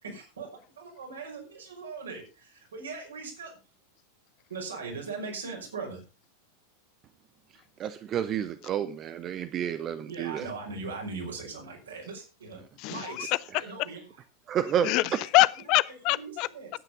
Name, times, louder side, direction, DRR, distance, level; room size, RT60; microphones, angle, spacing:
voice 1, 0.0-0.5 0.8-3.5 4.5-6.0 10.1-12.6 12.9-14.0 16.1-16.7, right 4 dB, 70° right, 5.6 m, -39 dB
voice 2, 7.8-10.5 14.5-14.9, right 9 dB, 30° right, 0.8 m, -30 dB
voice 3, 12.8-13.6 14.8-16.5, left 20 dB, 40° left, 0.6 m, -25 dB
12.0 x 9.2 x 5.5 m
figure-of-eight pair, 90°, 0 cm